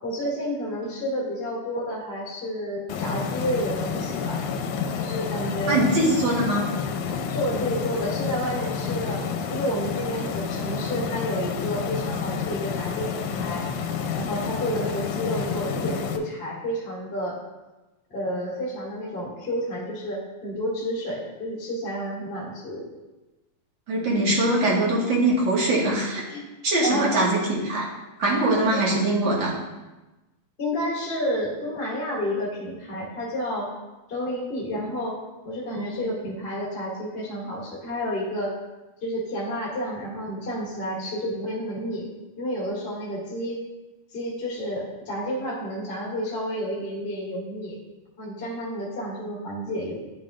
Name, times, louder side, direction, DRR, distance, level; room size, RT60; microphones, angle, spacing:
voice 1, 0.0-4.4 5.0-5.8 7.3-9.2 9.5-13.7 14.1-17.4 18.1-22.8 26.3-26.4 26.8-27.0 28.4-28.6 30.6-33.7 34.1-35.2 35.4-38.6 39.0-42.1 42.4-43.6 44.1-47.7 48.2-50.0, equal, 20° left, -6 dB, 2.3 m, -30 dB
sound 1, 2.9-16.2, left 6 dB, 85° left, 2.0 m, -29 dB
voice 2, 5.7-6.7 23.9-26.2 26.6-27.9 28.2-29.5, right 1 dB, 45° right, -5 dB, 2.2 m, -22 dB
10.5 x 7.4 x 2.5 m, 1.1 s
omnidirectional pair, 3.4 m